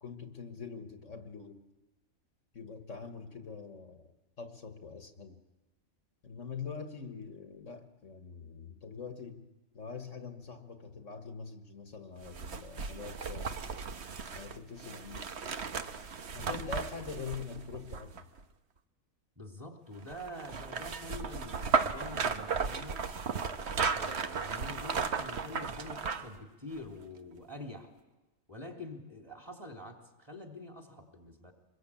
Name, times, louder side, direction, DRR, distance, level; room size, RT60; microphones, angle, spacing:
voice 1, 0.0-1.6 2.5-4.1 4.4-5.4 6.2-9.5 9.7-13.5 14.3-15.2 16.3-18.3, left 5 dB, 60° left, 6 dB, 1.8 m, -44 dB
sound 1, 12.2-18.4 20.1-26.4 26.8-26.9, right 5 dB, 50° right, 1.3 m, -35 dB
voice 2, 19.4-23.1 23.9-27.9 28.5-31.5, left 1 dB, 15° right, 3 dB, 3.3 m, -46 dB
25.0 x 21.5 x 8.7 m, 1.1 s
omnidirectional pair, 1.5 m